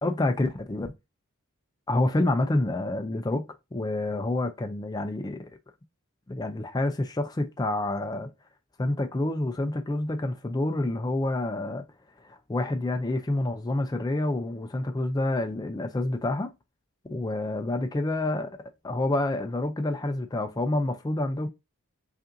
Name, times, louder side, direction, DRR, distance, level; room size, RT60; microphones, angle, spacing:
voice 1, 0.0-0.9 1.9-3.4 3.7-5.5 6.3-8.3 8.8-11.8 12.2-16.5 17.1-18.5 18.8-21.5, left 2 dB, 15° left, 0.3 m, -28 dB
5.3 x 2.5 x 2.5 m
head